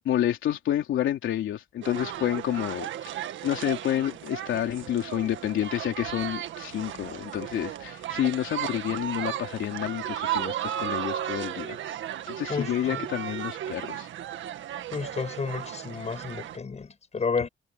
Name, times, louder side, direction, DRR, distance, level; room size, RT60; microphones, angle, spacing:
voice 1, 0.0-3.1 3.4-11.8 12.3-14.1, left 11 dB, 75° left, 3.3 m, -29 dB
sound 1, 1.8-16.6, right 11 dB, 75° right, 1.8 m, -35 dB
voice 2, 12.5-13.1 14.9-17.5, left 5 dB, 35° left, 6.2 m, -31 dB
cardioid pair, 90°, 20 cm